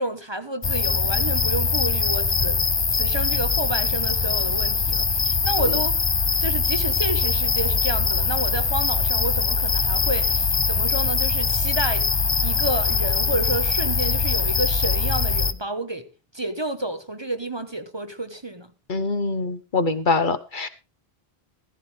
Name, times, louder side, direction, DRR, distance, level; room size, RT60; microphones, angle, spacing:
voice 1, 0.0-2.6 2.9-6.0 6.4-12.1 12.4-16.1 16.3-18.7, right 1 dB, 25° right, 1.0 m, -30 dB
sound 1, 0.6-15.5, left 4 dB, 30° left, 0.6 m, -22 dB
voice 2, 18.9-20.7, left 3 dB, 50° left, 1.1 m, -24 dB
15.0 x 14.0 x 3.3 m
omnidirectional pair, 1.1 m